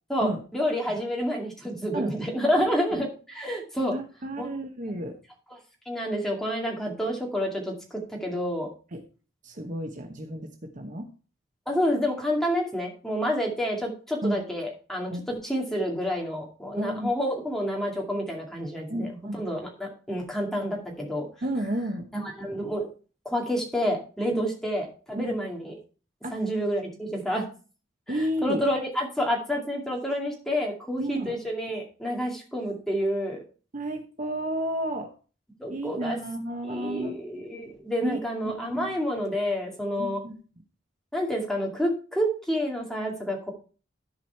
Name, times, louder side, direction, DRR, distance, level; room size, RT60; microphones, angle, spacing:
voice 1, 0.1-3.9 4.4-4.5 5.9-7.7 8.1-8.7 11.7-21.3 22.1-22.9 23.2-25.7 26.3-27.4 28.1-28.2 28.4-33.4 35.6-36.2 36.6-40.2 41.1-43.5, equal, ahead, -1 dB, 2.4 m, -29 dB
voice 2, 3.9-5.2 8.9-9.0 9.4-11.1 14.2-14.4 15.1-15.2 16.8-17.1 18.9-19.5 21.4-22.1 24.3-24.5 25.2-25.4 26.2-26.4 28.1-28.6 31.0-31.3 33.7-35.1 35.7-37.2 38.0-38.2 38.6-38.9 40.0-40.4, right 1 dB, 40° right, 4 dB, 1.0 m, -32 dB
13.5 x 4.9 x 4.5 m, 0.37 s
head